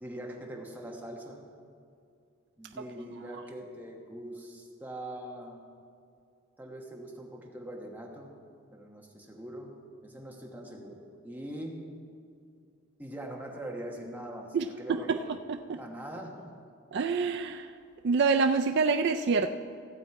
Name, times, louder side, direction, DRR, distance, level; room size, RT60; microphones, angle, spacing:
voice 1, 0.0-1.4 2.6-5.6 6.6-8.3 8.7-9.7 10.0-11.8 13.0-15.2 15.7-16.5, right 1 dB, 10° right, -1 dB, 1.2 m, -42 dB
voice 2, 14.5-15.2 15.7-15.8 16.9-17.7 18.0-19.5, right 4 dB, 55° right, 6 dB, 0.4 m, -26 dB
16.0 x 7.5 x 4.6 m, 2.4 s
head